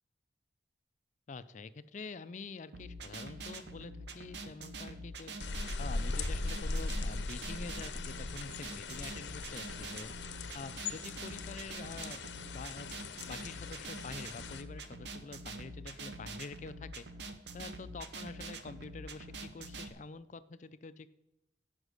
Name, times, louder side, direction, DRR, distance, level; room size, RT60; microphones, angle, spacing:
voice 1, 1.3-5.3 5.8-10.1 10.5-12.9 13.3-17.1 17.5-21.1, left 4 dB, 40° left, 14 dB, 0.4 m, -47 dB
sound 1, 2.7-19.9, right 2 dB, 65° right, 0.8 m, -45 dB
sound 2, 5.4-14.6, left 3 dB, 70° left, 0.7 m, -40 dB
9.8 x 5.3 x 6.4 m, 0.91 s
head